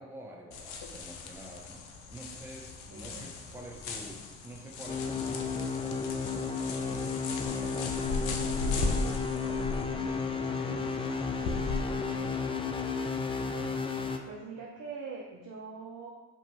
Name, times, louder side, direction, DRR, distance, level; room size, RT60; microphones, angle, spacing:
voice 1, 0.0-9.2 9.5-12.9, right 1 dB, 5° right, 0 dB, 0.8 m, -48 dB
sound 1, 0.5-11.8, left 3 dB, 70° left, 0.7 m, -37 dB
voice 2, 2.9-3.4 14.3-16.1, right 5 dB, 40° right, -2 dB, 0.7 m, -43 dB
sound 2, 4.9-14.2, left 4 dB, 15° left, 0.4 m, -33 dB
4.9 x 2.9 x 3.5 m, 1.3 s
hypercardioid pair, 50°, 42 cm